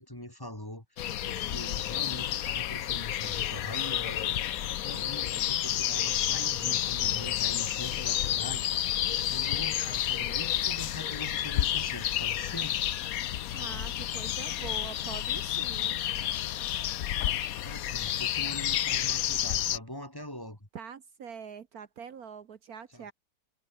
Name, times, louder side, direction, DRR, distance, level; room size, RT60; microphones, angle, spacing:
voice 1, 0.0-12.8 17.6-20.7 22.9-23.1, left 1 dB, 15° left, 3.1 m, -43 dB
sound 1, 1.0-19.8, left 12 dB, 65° left, 1.1 m, -30 dB
voice 2, 13.5-16.0 20.7-23.1, right 7 dB, 65° right, 1.6 m, -44 dB
omnidirectional pair, 1.8 m